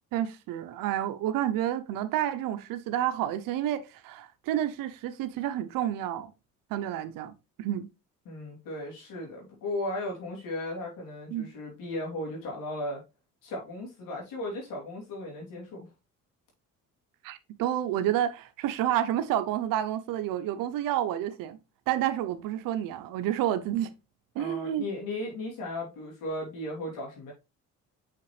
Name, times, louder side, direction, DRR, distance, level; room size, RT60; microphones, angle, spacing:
voice 1, 0.1-6.3 6.7-7.3 7.6-7.9 11.3-11.5 17.2-21.6 21.9-23.9 24.4-24.8, right 11 dB, 90° right, 0.7 m, -29 dB
voice 2, 8.2-13.0 13.4-15.9 24.4-27.3, left 1 dB, 80° left, 3.1 m, -36 dB
5.9 x 5.7 x 3.1 m
cardioid pair, 100°, 32 cm